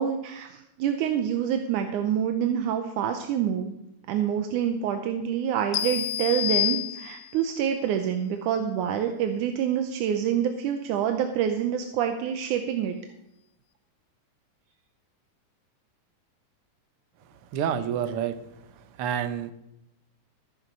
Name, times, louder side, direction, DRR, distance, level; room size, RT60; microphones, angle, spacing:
voice 1, 0.0-3.8 4.1-13.0, right 9 dB, 85° right, 6 dB, 2.3 m, -27 dB
sound 1, 5.7-7.5, left 13 dB, 70° left, 1.7 m, -28 dB
voice 2, 17.5-18.4 18.8-19.5, right 9 dB, 65° right, 10 dB, 1.5 m, -28 dB
13.5 x 9.6 x 5.3 m, 0.85 s
omnidirectional pair, 3.5 m